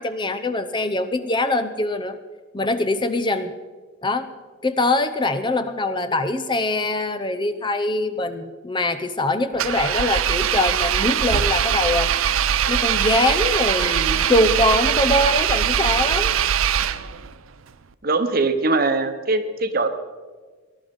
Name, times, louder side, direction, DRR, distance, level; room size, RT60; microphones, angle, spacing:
voice 1, 0.0-2.2 2.5-3.5 4.0-4.3 4.6-12.1 12.7-16.3, left 2 dB, 20° left, 10 dB, 0.6 m, -23 dB
Engine, 9.6-17.3, right 9 dB, 75° right, 0.5 m, -21 dB
voice 2, 18.0-19.9, right 3 dB, 45° right, 9 dB, 1.1 m, -21 dB
19.0 x 11.5 x 5.4 m, 1.4 s
head